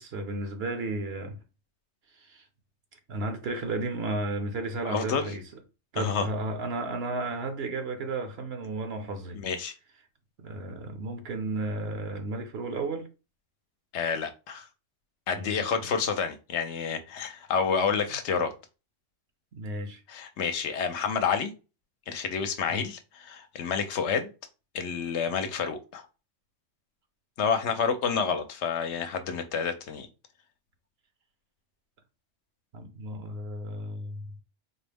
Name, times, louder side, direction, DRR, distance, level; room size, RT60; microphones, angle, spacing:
voice 1, 0.0-1.4 2.2-2.4 3.1-5.4 5.9-9.4 10.4-13.1 15.3-15.9 19.5-20.0 22.7-22.9 32.7-34.3, right 2 dB, 65° right, 0.9 m, -33 dB
voice 2, 4.8-5.3 6.0-6.3 9.3-9.7 13.9-14.7 15.3-18.5 20.1-21.5 22.1-24.3 24.7-26.1 27.4-30.1, left 6 dB, 75° left, 0.9 m, -29 dB
4.2 x 2.0 x 3.4 m
omnidirectional pair, 1.2 m